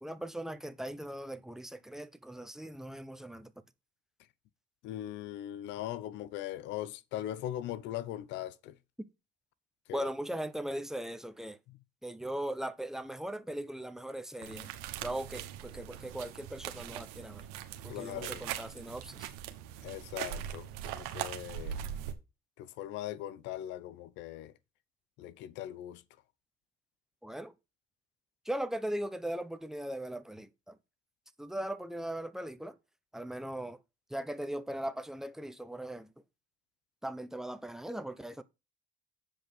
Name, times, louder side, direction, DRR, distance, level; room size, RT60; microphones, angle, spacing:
voice 1, 0.0-3.5 9.9-11.6 12.0-14.7 15.0-17.5 17.8-19.3 27.2-27.5 28.4-30.8 31.4-32.8 33.1-33.8 34.1-36.1 37.0-38.4, right 1 dB, ahead, 0.9 m, -39 dB
voice 2, 4.8-8.8 9.9-10.1 17.9-18.4 19.8-21.8 22.6-24.5 25.2-26.0, left 13 dB, 75° left, 0.8 m, -40 dB
sound 1, 14.4-22.1, right 11 dB, 85° right, 1.2 m, -41 dB
7.8 x 5.1 x 5.2 m
supercardioid pair, 80°, 19 cm